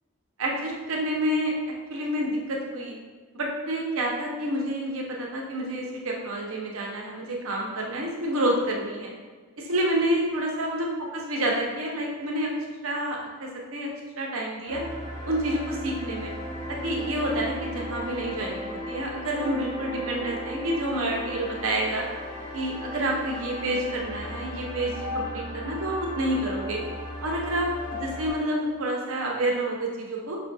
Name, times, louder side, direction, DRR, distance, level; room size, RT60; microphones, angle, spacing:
voice 1, 0.4-3.0 3.3-9.1 9.6-10.9 11.1-12.5 12.8-13.9 14.2-14.8 15.3-16.3 16.7-22.1 22.5-26.8 27.2-30.4, right 1 dB, 65° right, -1 dB, 0.7 m, -28 dB
sound 1, 14.7-28.3, left 1 dB, 30° left, 0.8 m, -36 dB
5.0 x 2.5 x 2.3 m, 1.4 s
head